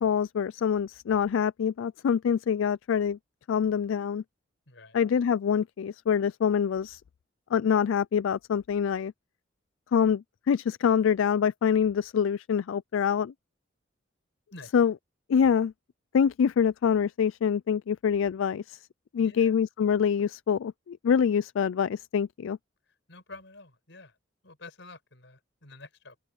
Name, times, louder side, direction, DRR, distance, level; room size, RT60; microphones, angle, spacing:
voice 1, 0.0-3.2 3.5-4.2 4.9-7.0 7.5-9.1 9.9-13.3 14.7-14.9 15.3-15.7 16.1-18.8 19.1-22.6, left 7 dB, 90° left, 0.3 m, -25 dB
voice 2, 4.7-5.0 14.5-14.8 19.2-19.5 22.9-24.2 24.4-26.2, left 2 dB, 65° left, 6.1 m, -49 dB
open air
head